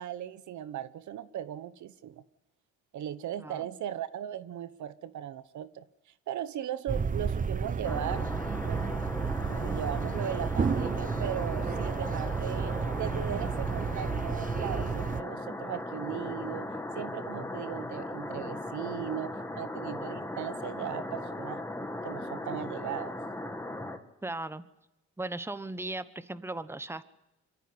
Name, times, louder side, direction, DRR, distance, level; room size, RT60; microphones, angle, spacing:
voice 1, 0.0-2.2 2.9-5.8 6.3-8.3 8.7-9.0 9.5-21.6 22.0-23.1, right 10 dB, 70° right, 14 dB, 1.1 m, -38 dB
sound 1, 6.9-15.2, right 5 dB, 25° right, 0.8 m, -32 dB
sound 2, 7.8-24.0, left 1 dB, 10° left, 2.2 m, -38 dB
voice 2, 24.2-24.6 25.2-27.0, right 2 dB, 10° right, 13 dB, 1.2 m, -37 dB
25.0 x 14.0 x 9.7 m, 0.92 s
cardioid pair, 90°, 30 cm